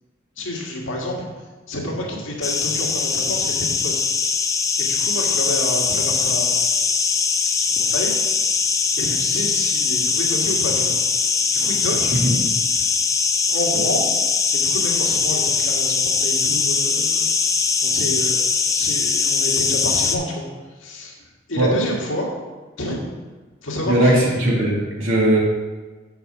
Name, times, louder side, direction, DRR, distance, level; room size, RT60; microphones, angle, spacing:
voice 1, 0.4-1.3 1.7-4.0 4.8-6.7 7.6-8.1 9.0-11.0 11.5-12.3 12.8-12.9 13.5-14.0 14.5-17.3 17.8-20.5 20.8-21.2 21.5-22.3 22.8-23.0 23.6-24.3, left 1 dB, 80° left, -3 dB, 1.8 m, -29 dB
sound 1, 2.4-20.2, left 5 dB, 15° left, 0.4 m, -21 dB
voice 2, 23.9-25.4, right 1 dB, 90° right, -4 dB, 2.3 m, -18 dB
6.9 x 4.3 x 6.6 m, 1.3 s
head